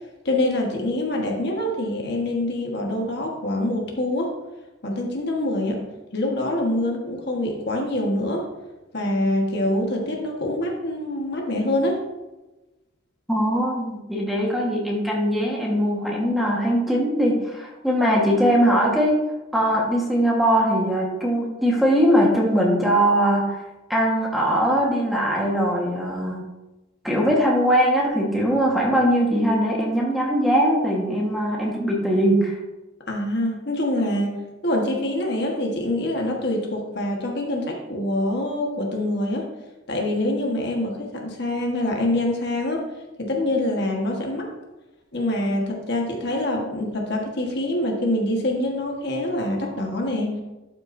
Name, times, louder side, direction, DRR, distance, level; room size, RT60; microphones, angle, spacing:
voice 1, 0.2-4.3 4.8-5.8 6.1-8.5 8.9-12.0 33.1-39.5 39.9-42.9 43.2-44.5 45.1-50.3, left 1 dB, 55° left, 0 dB, 1.5 m, -25 dB
voice 2, 13.3-19.2 19.5-23.6 23.9-26.4 27.0-32.5, equal, ahead, -3 dB, 1.4 m, -21 dB
12.0 x 5.9 x 2.7 m, 1.1 s
head